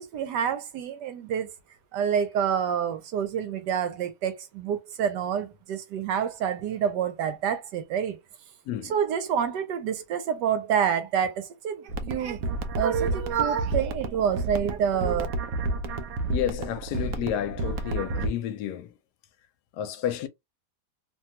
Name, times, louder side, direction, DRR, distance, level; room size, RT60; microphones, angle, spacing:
voice 1, 0.0-1.5 1.9-8.2 8.9-12.4 12.8-15.3, right 8 dB, 90° right, 1.3 m, -27 dB
voice 2, 8.7-9.0 16.3-18.9 19.7-20.3, left 10 dB, 80° left, 1.1 m, -31 dB
sound 1, 11.9-18.3, right 2 dB, 70° right, 0.9 m, -31 dB
3.0 x 2.3 x 2.7 m
omnidirectional pair, 1.8 m